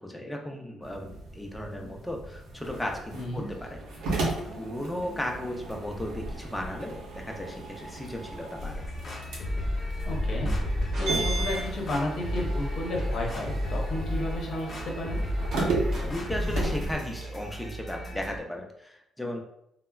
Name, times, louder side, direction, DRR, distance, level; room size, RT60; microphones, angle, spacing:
voice 1, 0.0-3.8 4.6-8.8 15.9-19.4, left 1 dB, 5° left, 1 dB, 0.5 m, -35 dB
sound 1, 0.8-17.0, right 2 dB, 90° right, 0.7 m, -34 dB
voice 2, 3.1-3.5 10.0-10.5 11.0-15.2, left 1 dB, 60° left, -2 dB, 0.8 m, -32 dB
sound 2, 8.6-18.4, left 1 dB, 30° left, 1.1 m, -33 dB
sound 3, 10.6-12.6 13.0-13.1 13.5-13.6 14.7-17.7, equal, 55° right, 0.9 m, -45 dB
3.4 x 2.1 x 2.3 m, 0.78 s
cardioid pair, 90°, 0 cm